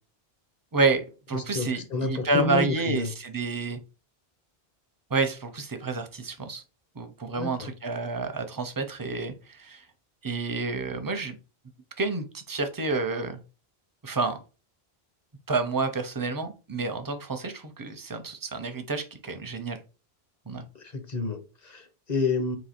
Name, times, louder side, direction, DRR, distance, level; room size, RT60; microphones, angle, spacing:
voice 1, 0.7-3.8 5.1-6.6 7.0-9.8 10.2-11.3 12.0-13.4 14.0-14.4 15.5-19.8 20.5-20.6, right 3 dB, 30° right, 0.4 m, -29 dB
voice 2, 1.3-3.1 7.4-7.7 20.8-22.6, left 3 dB, 45° left, 0.8 m, -29 dB
3.9 x 2.7 x 4.2 m
omnidirectional pair, 1.1 m